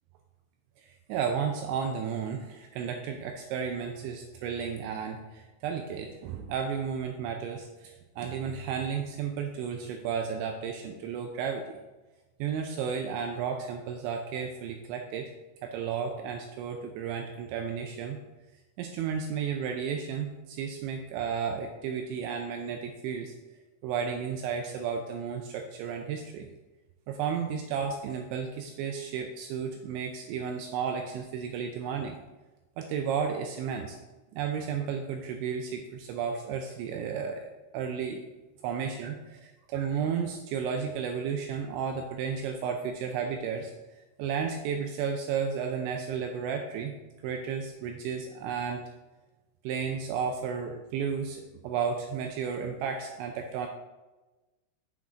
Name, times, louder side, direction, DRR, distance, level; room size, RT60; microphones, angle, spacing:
voice 1, 0.8-11.6 12.4-15.3 15.6-18.2 18.8-23.3 23.8-26.5 27.1-32.2 32.8-34.0 34.3-38.3 38.6-43.7 44.2-46.9 47.2-48.8 49.6-53.7, right 6 dB, 85° right, 4 dB, 2.6 m, -33 dB
7.5 x 5.8 x 3.7 m, 1.1 s
omnidirectional pair, 5.8 m